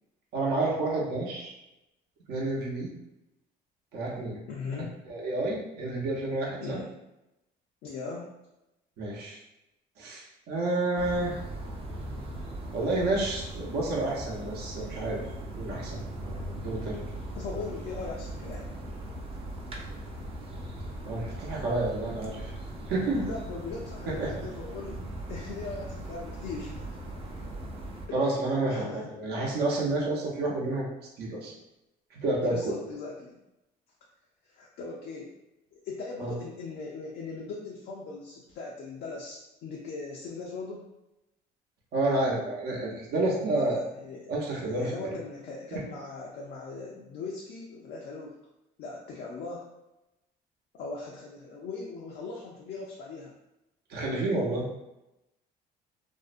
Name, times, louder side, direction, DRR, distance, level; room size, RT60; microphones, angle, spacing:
voice 1, 0.3-1.5 2.3-2.9 3.9-4.4 5.1-6.8 9.0-9.4 10.0-11.4 12.7-15.2 15.5-16.0 16.5-17.0 21.1-22.5 22.9-23.2 24.2-24.3 28.1-28.9 29.2-30.9 31.2-31.5 32.1-32.7 36.2-36.3 41.9-43.8 44.3-44.9 45.7-45.8 53.9-54.8, right 2 dB, 75° right, -3 dB, 0.7 m, -29 dB
voice 2, 4.5-4.9 6.6-6.9 7.8-8.3 17.4-18.7 23.1-26.8 27.4-27.6 28.1-28.2 28.7-29.1 32.4-33.4 34.5-35.3 35.7-40.8 43.5-44.4 44.8-48.3 48.8-49.7 50.7-53.3, left 4 dB, 70° left, -3 dB, 0.5 m, -39 dB
sound 1, 11.0-28.1, right 1 dB, 35° right, 0.5 m, -39 dB
2.5 x 2.0 x 2.4 m, 0.92 s
cardioid pair, 110°, 17 cm